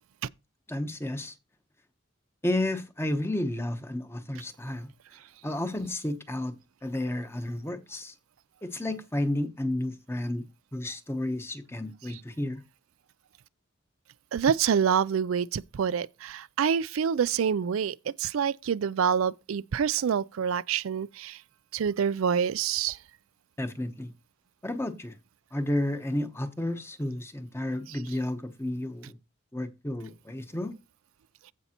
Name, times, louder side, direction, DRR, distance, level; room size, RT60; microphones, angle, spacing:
voice 1, 0.7-1.3 2.4-4.9 5.4-6.5 6.8-8.1 8.6-10.4 10.7-12.6 23.6-24.1 24.6-25.1 25.5-29.2 29.5-30.7, left 1 dB, 10° left, 0.9 m, -31 dB
voice 2, 14.3-21.4 21.7-23.0, right 7 dB, 90° right, 0.4 m, -27 dB
15.0 x 5.3 x 2.9 m
head